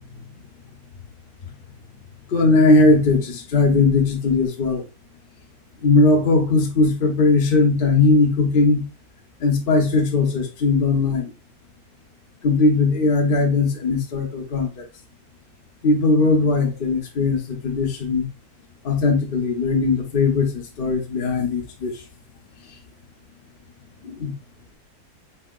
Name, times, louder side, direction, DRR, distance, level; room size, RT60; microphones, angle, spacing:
voice 1, 2.3-4.8 5.8-8.8 9.4-11.3 12.4-14.8 15.8-18.3 18.8-22.0 24.0-24.3, left 3 dB, 45° left, 1.0 m, -19 dB
4.9 x 4.5 x 2.4 m
omnidirectional pair, 1.6 m